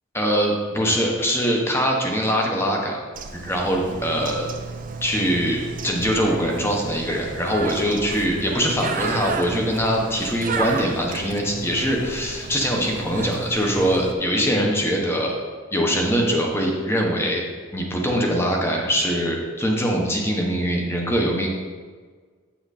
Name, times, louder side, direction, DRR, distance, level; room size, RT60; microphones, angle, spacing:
voice 1, 0.1-3.0 3.4-4.5 5.0-15.4 15.7-17.4 17.7-21.5, equal, 10° left, 0 dB, 1.1 m, -22 dB
Bird, 3.1-14.1, right 4 dB, 40° right, 0.6 m, -32 dB
8.7 x 5.8 x 4.2 m, 1.5 s
head